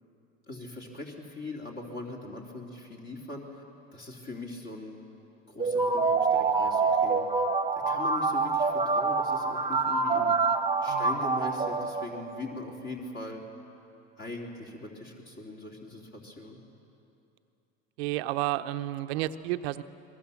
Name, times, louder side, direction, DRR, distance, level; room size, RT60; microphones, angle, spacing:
voice 1, 0.5-3.6 3.9-5.0 5.5-7.2 7.9-10.4 10.8-13.4 14.2-16.6, left 2 dB, 35° left, -1 dB, 3.4 m, -41 dB
sound 1, 5.6-12.4, right 4 dB, 15° right, 1.3 m, -26 dB
voice 2, 18.0-19.8, right 15 dB, 75° right, 10 dB, 0.8 m, -31 dB
22.5 x 22.0 x 7.2 m, 2.8 s
supercardioid pair, 100°, 31 cm